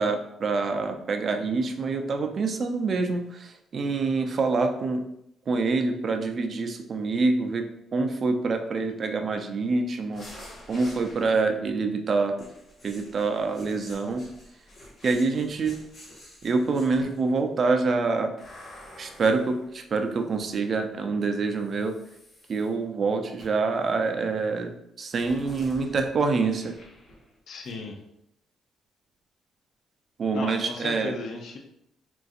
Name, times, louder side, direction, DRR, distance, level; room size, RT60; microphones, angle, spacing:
voice 1, 0.0-5.0 5.5-7.6 7.9-10.3 10.7-12.5 12.8-14.3 15.0-15.8 16.4-18.3 19.0-21.9 22.5-26.7 30.2-31.1, right 3 dB, 50° right, 6 dB, 0.4 m, -26 dB
sound 1, 10.1-11.7 12.4-17.4 18.4-20.5 21.5-22.7 23.4-23.7 25.1-27.4 27.6-27.8, left 1 dB, 50° left, 1.2 m, -49 dB
voice 2, 27.5-28.0 30.3-31.6, left 3 dB, 65° left, 3 dB, 0.4 m, -35 dB
3.8 x 2.5 x 2.4 m, 0.77 s
cardioid pair, 90°, 0 cm